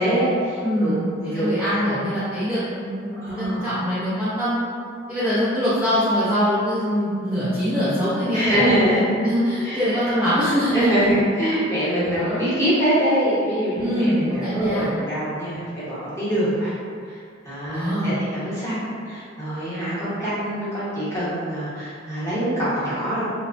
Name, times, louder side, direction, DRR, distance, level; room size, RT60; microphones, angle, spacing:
voice 1, 0.0-0.9 1.2-2.1 3.1-3.7 5.2-5.3 8.3-9.1 9.6-9.8 10.7-16.7 17.1-17.2 17.4-23.3, equal, 15° left, -11 dB, 0.9 m, -24 dB
voice 2, 0.6-4.6 5.1-8.7 9.2-11.0 12.1-12.4 13.8-14.9 15.6-15.7 17.7-18.1, equal, 5° right, -14 dB, 0.4 m, -23 dB
2.9 x 2.0 x 2.5 m, 2.2 s
head